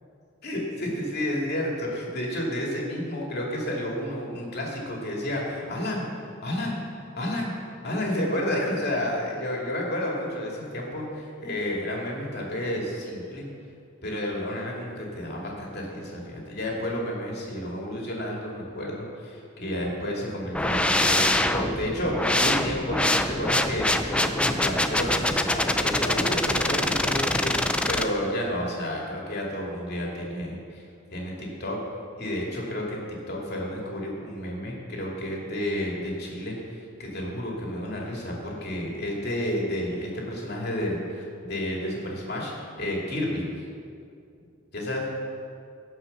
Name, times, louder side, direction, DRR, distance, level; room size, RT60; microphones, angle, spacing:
voice 1, 0.4-6.1 6.4-6.8 7.2-7.5 7.8-13.5 14.0-31.8 32.2-36.6 37.0-43.5 44.7-45.1, left 1 dB, 50° left, -2 dB, 2.6 m, -31 dB
sound 1, 20.5-28.0, left 1 dB, 5° left, 0.4 m, -24 dB
17.0 x 5.7 x 6.7 m, 2.4 s
head